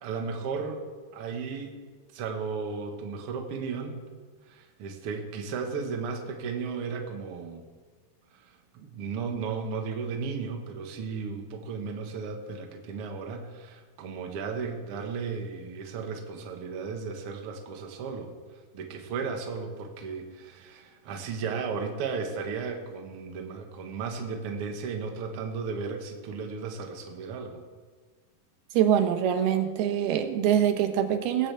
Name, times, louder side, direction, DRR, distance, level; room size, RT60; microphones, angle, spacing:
voice 1, 0.0-0.8 1.1-1.7 2.1-4.0 4.5-7.6 8.7-18.3 18.7-27.6, right 5 dB, 50° right, 3 dB, 1.8 m, -35 dB
voice 2, 28.7-31.5, right 9 dB, 85° right, 7 dB, 3.0 m, -24 dB
18.5 x 15.5 x 3.5 m, 1.4 s
omnidirectional pair, 4.4 m